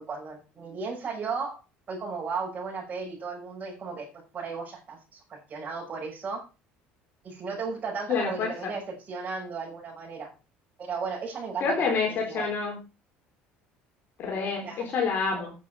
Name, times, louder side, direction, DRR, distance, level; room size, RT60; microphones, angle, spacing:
voice 1, 0.0-1.6 1.9-4.1 4.3-6.4 7.2-10.3 10.8-11.7 12.1-12.5 14.6-14.8 15.3-15.4, right 5 dB, 40° right, -4 dB, 6.4 m, -35 dB
voice 2, 8.1-8.5 11.6-12.8 14.2-15.5, left 5 dB, 50° left, 0 dB, 3.9 m, -27 dB
9.5 x 8.3 x 5.6 m, 0.32 s
supercardioid pair, 100°, 4 cm